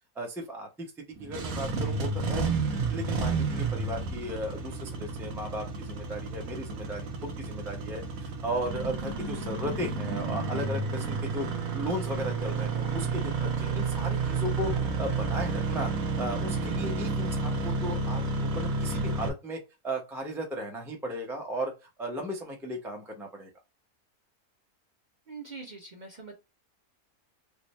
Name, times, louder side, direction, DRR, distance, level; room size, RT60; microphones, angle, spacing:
voice 1, 0.1-0.9 1.2-2.6 2.9-11.5 11.7-15.9 16.2-21.7 22.0-23.5, equal, 5° right, 0 dB, 0.4 m, -36 dB
Engine starting, 1.2-19.3, right 3 dB, 70° right, 1.1 m, -31 dB
voice 2, 25.3-26.3, right 4 dB, 40° right, 0 dB, 0.7 m, -43 dB
3.3 x 2.0 x 4.1 m, 0.25 s
omnidirectional pair, 1.6 m